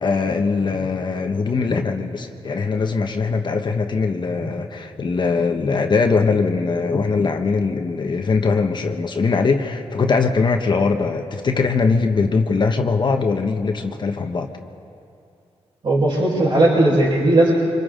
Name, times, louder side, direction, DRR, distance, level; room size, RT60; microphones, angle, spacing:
voice 1, 0.0-14.5, left 4 dB, 45° left, 4 dB, 1.2 m, -21 dB
voice 2, 15.8-17.5, right 1 dB, 50° right, -7 dB, 5.1 m, -17 dB
28.0 x 25.5 x 3.8 m, 2.5 s
cardioid pair, 100°, 11 cm